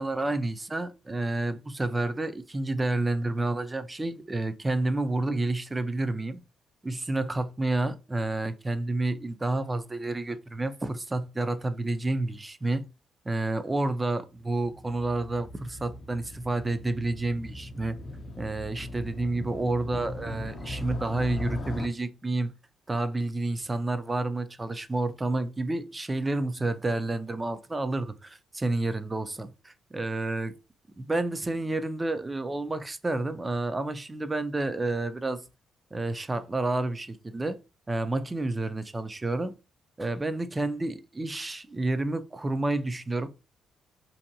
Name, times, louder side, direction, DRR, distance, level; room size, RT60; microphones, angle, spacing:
voice 1, 0.0-6.4 6.8-12.8 13.3-18.0 18.4-22.5 22.9-30.5 31.0-35.4 35.9-37.6 37.9-39.5 40.0-43.3, right 2 dB, 20° right, 0.3 m, -30 dB
Motorcycle, 14.3-21.9, left 1 dB, 45° left, 0.4 m, -39 dB
2.6 x 2.1 x 2.6 m
cardioid pair, 90°, 0 cm